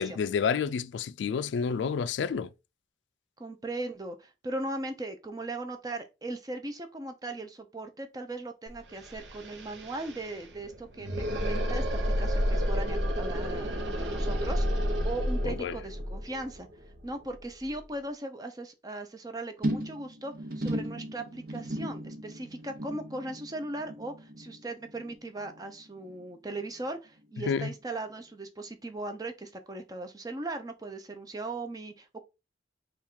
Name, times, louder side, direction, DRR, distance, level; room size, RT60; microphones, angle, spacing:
voice 1, 0.0-2.5 15.4-15.8 27.4-27.7, left 6 dB, 90° left, 0.3 m, -29 dB
voice 2, 3.4-16.7 17.0-32.2, right 2 dB, 20° right, 0.5 m, -38 dB
sound 1, 8.7-8.8 9.0-17.8, equal, 85° right, 0.8 m, -31 dB
sound 2, 19.6-26.2 26.5-26.9 27.2-27.3, right 1 dB, 55° right, 0.9 m, -37 dB
3.6 x 2.4 x 4.4 m
head